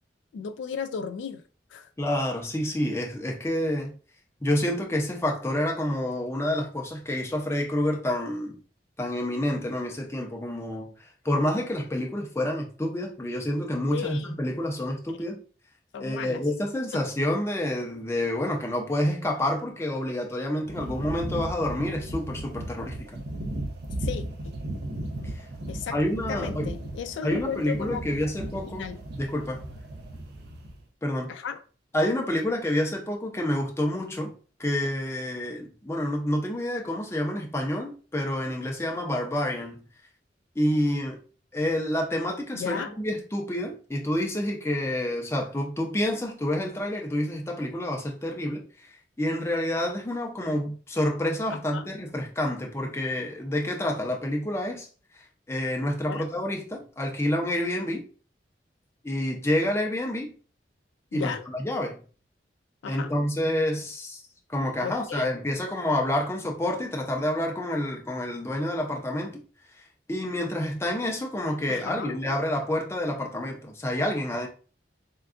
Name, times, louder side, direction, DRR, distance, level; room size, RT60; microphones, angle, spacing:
voice 1, 0.3-1.4 1.7-1.9 13.9-14.3 15.2-15.3 15.9-16.4 16.9-17.0 24.0-24.5 25.7-26.0 26.3-28.0 28.7-29.0 31.3-31.6 42.5-42.9 51.5-51.9 56.1-56.3 61.1-61.4 62.8-63.1 64.8-65.2 71.7-72.2, left 6 dB, 90° left, 0.3 m, -35 dB
voice 2, 2.0-3.9 4.4-8.6 9.0-10.9 11.2-15.4 16.0-23.2 25.3-25.5 25.9-26.7 27.2-28.9 29.2-29.6 31.0-31.3 31.9-34.3 34.6-39.8 40.6-41.2 41.5-54.9 55.5-58.0 59.0-60.3 61.1-62.0 62.9-64.2 64.5-69.4 70.1-74.5, left 1 dB, 15° left, 0.6 m, -28 dB
sound 1, 20.6-30.8, right 1 dB, 60° right, 0.5 m, -36 dB
3.5 x 2.3 x 2.4 m
head